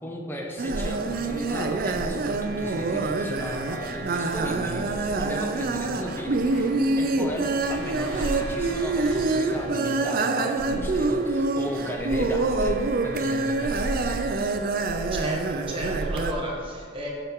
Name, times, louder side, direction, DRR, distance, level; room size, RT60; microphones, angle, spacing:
voice 1, 0.0-14.2, equal, 10° left, 0 dB, 0.9 m, -35 dB
sound 1, 0.6-9.6, equal, 85° left, 1.4 m, -43 dB
sound 2, 0.6-16.3, right 3 dB, 50° right, 0.4 m, -26 dB
voice 2, 15.1-17.1, right 1 dB, 25° right, -3 dB, 1.2 m, -34 dB
12.5 x 4.4 x 3.6 m, 2.1 s
head